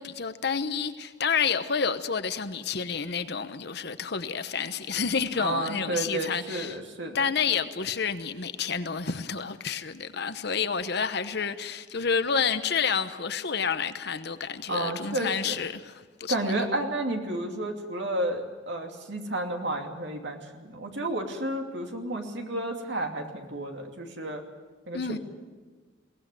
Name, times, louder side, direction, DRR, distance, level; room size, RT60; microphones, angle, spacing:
voice 1, 0.0-6.8 7.1-16.4 24.9-25.2, left 6 dB, 60° left, 1.0 m, -29 dB
voice 2, 5.4-7.2 14.7-15.6 16.3-24.4 24.9-25.2, right 1 dB, 65° right, 2.7 m, -31 dB
22.0 x 18.0 x 9.2 m
head